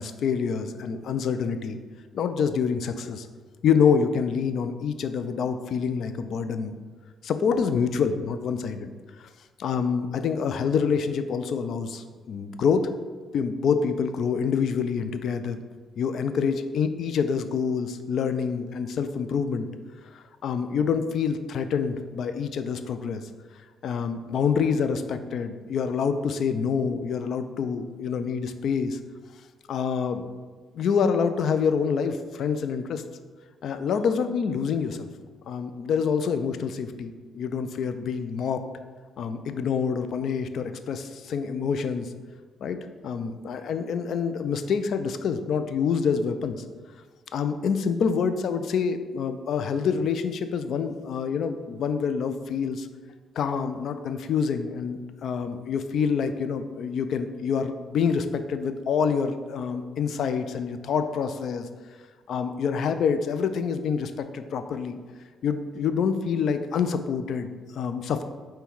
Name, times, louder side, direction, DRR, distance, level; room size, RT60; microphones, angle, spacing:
voice 1, 0.0-1.8 2.1-3.3 3.6-6.7 7.2-8.9 9.2-9.3 9.6-12.8 13.3-15.6 16.0-19.7 20.1-23.2 23.8-29.0 29.7-30.2 30.7-33.0 33.6-35.1 35.5-38.6 39.2-42.1 42.6-42.8 43.0-46.6 47.3-52.9 53.4-61.7 62.3-65.0 65.4-68.2, left 6 dB, 65° left, 9 dB, 0.3 m, -26 dB
5.4 x 2.2 x 4.5 m, 1.5 s
cardioid pair, 90°, 0 cm